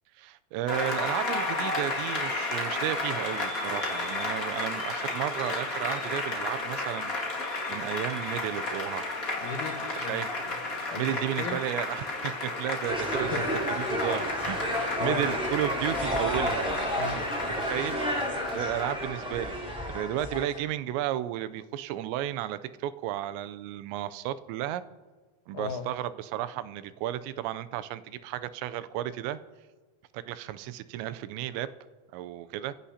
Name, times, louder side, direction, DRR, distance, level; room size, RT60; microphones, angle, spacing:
voice 1, 0.2-7.1 7.7-9.2 9.9-10.3 11.0-13.5 13.8-16.7 17.4-18.0 18.5-19.5 19.9-24.8 25.5-29.4 30.1-31.7 32.1-32.7, right 12 dB, 80° right, 12 dB, 2.8 m, -33 dB
Applause, 0.7-18.9, left 2 dB, 50° left, 1.0 m, -33 dB
voice 2, 9.4-10.2 10.5-11.6 13.3-13.5 15.0-15.3 17.0-17.3 25.5-25.9, left 6 dB, 80° left, 5 dB, 1.7 m, -37 dB
sound 1, 12.9-20.6, equal, ahead, 2.7 m, -31 dB
28.0 x 16.0 x 2.8 m, 1.4 s
omnidirectional pair, 5.4 m